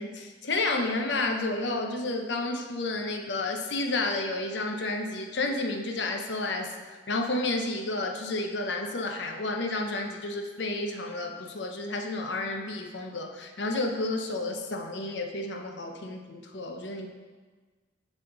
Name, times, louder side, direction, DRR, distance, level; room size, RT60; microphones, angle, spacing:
voice 1, 0.0-17.1, left 2 dB, 70° left, 3 dB, 0.7 m, -31 dB
6.8 x 5.8 x 3.9 m, 1.4 s
head